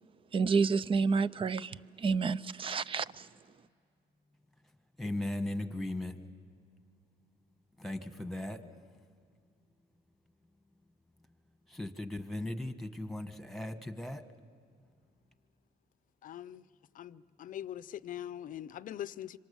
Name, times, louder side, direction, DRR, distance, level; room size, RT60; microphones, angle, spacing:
voice 1, 0.3-3.3, right 5 dB, 30° right, 0.6 m, -29 dB
voice 2, 5.0-6.3 7.8-8.8 11.7-14.2, left 1 dB, ahead, 1.6 m, -37 dB
voice 3, 16.2-16.6 17.0-19.4, left 11 dB, 50° left, 0.6 m, -42 dB
26.0 x 26.0 x 7.1 m
cardioid pair, 110°, 17 cm